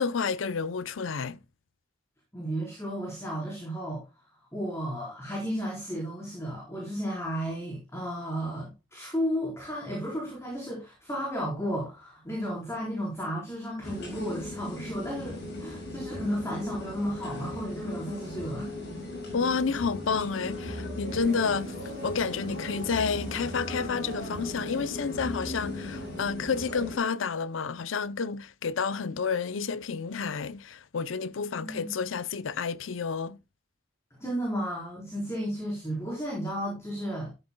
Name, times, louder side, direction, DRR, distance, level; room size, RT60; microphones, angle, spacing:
voice 1, 0.0-1.4 19.3-21.7 22.0-33.4, left 5 dB, 80° left, 0.6 m, -30 dB
voice 2, 2.3-4.0 4.5-18.7 31.6-31.9 34.2-37.4, equal, 15° left, 4.2 m, -33 dB
sound 1, 13.8-27.0, left 1 dB, 60° left, 6.7 m, -37 dB
sound 2, 21.1-27.7, equal, 50° right, 3.7 m, -47 dB
13.5 x 10.0 x 2.2 m
head